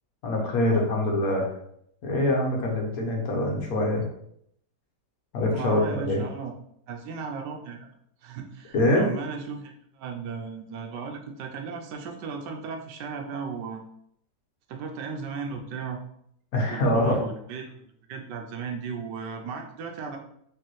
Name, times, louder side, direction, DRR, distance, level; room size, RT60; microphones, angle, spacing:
voice 1, 0.2-1.5 2.0-4.0 5.3-6.2 8.7-9.1 16.5-17.2, left 1 dB, 60° left, 0 dB, 1.3 m, -24 dB
voice 2, 5.5-6.5 6.9-7.9 8.2-13.8 14.7-16.0 16.7-20.2, right 5 dB, 90° right, 3 dB, 1.3 m, -36 dB
4.8 x 3.2 x 3.0 m, 0.71 s
omnidirectional pair, 1.8 m